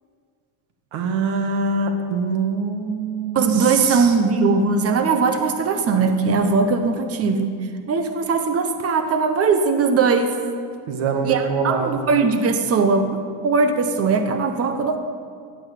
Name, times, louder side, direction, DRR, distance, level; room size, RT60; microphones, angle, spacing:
voice 1, 0.9-4.1 10.9-12.0, right 4 dB, 80° right, 5 dB, 2.0 m, -24 dB
voice 2, 3.3-7.6 7.8-10.3 11.2-13.2 13.4-15.0, right 4 dB, 30° right, 7 dB, 0.9 m, -20 dB
15.0 x 8.0 x 9.2 m, 2.1 s
cardioid pair, 175°, 47 cm